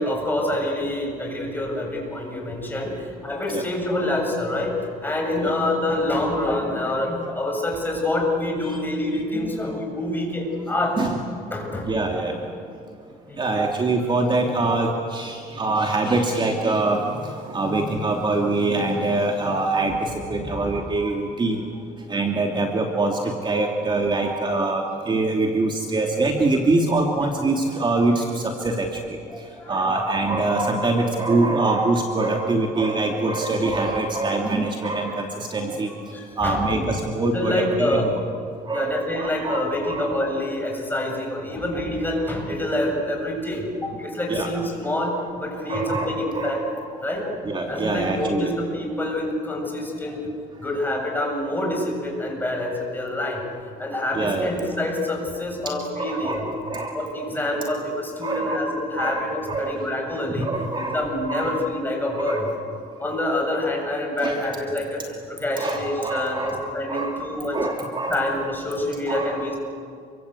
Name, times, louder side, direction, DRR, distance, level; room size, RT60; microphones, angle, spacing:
voice 1, 0.0-11.0 11.5-11.9 13.3-13.5 20.4-20.7 29.3-30.0 36.1-36.9 37.3-38.1 38.7-46.6 47.0-47.3 47.7-50.3 50.6-53.4 53.8-56.4 56.9-60.5 60.8-62.5 63.0-67.6 68.1-69.6, left 1 dB, 10° left, 0 dB, 7.7 m, -26 dB
voice 2, 11.9-12.4 13.4-21.6 22.1-28.9 29.7-35.9 36.4-38.1 38.7-40.1 44.3-44.5 45.7-46.6 47.4-48.5 54.1-54.5 55.9-57.0 58.2-58.6 59.0-59.2 59.5-59.8 60.4-61.6 62.3-62.4 64.2-64.4 65.6-66.6 66.9-67.2 67.5-68.2 69.1-69.4, right 2 dB, 25° right, 2 dB, 2.6 m, -24 dB
29.5 x 24.0 x 8.4 m, 2.4 s
cardioid pair, 110°, 17 cm